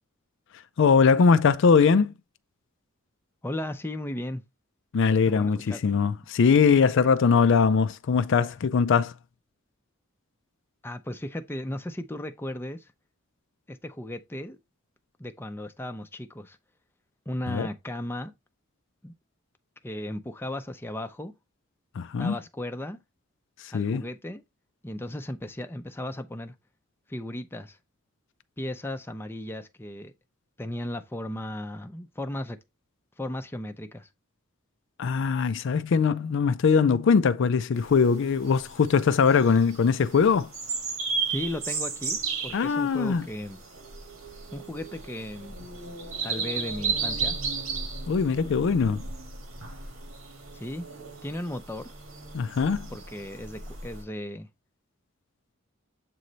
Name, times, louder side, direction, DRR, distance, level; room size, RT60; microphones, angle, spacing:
voice 1, 0.8-2.1 4.9-9.1 17.5-17.7 21.9-22.4 23.6-24.0 35.0-40.5 42.5-43.3 48.1-49.0 52.3-52.9, left 5 dB, 60° left, 0.4 m, -21 dB
voice 2, 3.4-4.4 5.3-5.8 10.8-12.9 13.7-14.6 15.2-16.6 17.3-18.3 19.0-19.1 19.8-21.3 22.2-23.0 23.7-24.4 24.8-26.5 27.1-27.8 28.6-30.1 30.6-32.6 33.2-34.1 41.3-43.6 44.5-45.7 46.2-47.4 50.5-50.8 51.2-51.9 52.9-54.5, left 1 dB, 10° left, 0.5 m, -35 dB
sound 1, 37.7-54.0, right 5 dB, 85° right, 1.7 m, -35 dB
7.6 x 3.1 x 4.0 m
head